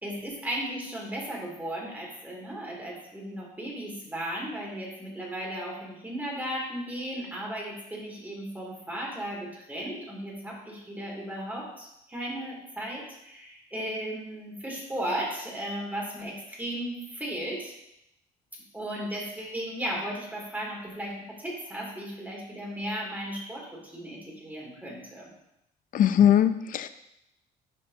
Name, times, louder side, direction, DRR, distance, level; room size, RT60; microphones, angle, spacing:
voice 1, 0.0-17.7 18.7-25.3, right 1 dB, 10° right, -3 dB, 2.8 m, -35 dB
voice 2, 25.9-26.9, left 10 dB, 55° left, 11 dB, 0.5 m, -20 dB
11.5 x 5.4 x 2.8 m, 0.82 s
cardioid pair, 110°, 17 cm